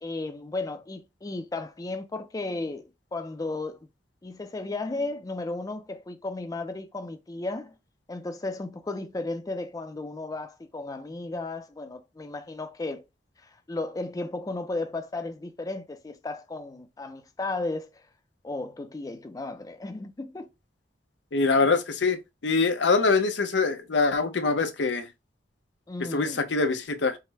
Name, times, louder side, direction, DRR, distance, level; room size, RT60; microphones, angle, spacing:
voice 1, 0.0-3.9 4.2-7.7 8.1-13.1 13.4-18.0 18.4-20.5 25.9-26.4, left 2 dB, 20° left, 0.4 m, -34 dB
voice 2, 21.3-25.1 26.1-27.2, left 4 dB, 80° left, 0.7 m, -24 dB
5.5 x 2.0 x 3.3 m
head